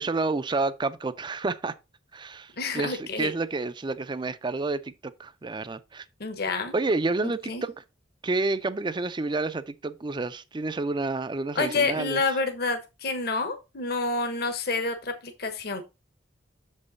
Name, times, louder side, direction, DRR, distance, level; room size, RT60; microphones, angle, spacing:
voice 1, 0.0-1.7 2.1-6.0 6.7-7.8 8.2-12.2, right 3 dB, 25° right, 0.5 m, -29 dB
voice 2, 2.6-3.3 6.2-6.8 7.2-7.6 11.5-15.9, left 3 dB, 60° left, 1.1 m, -28 dB
7.0 x 5.4 x 4.0 m
head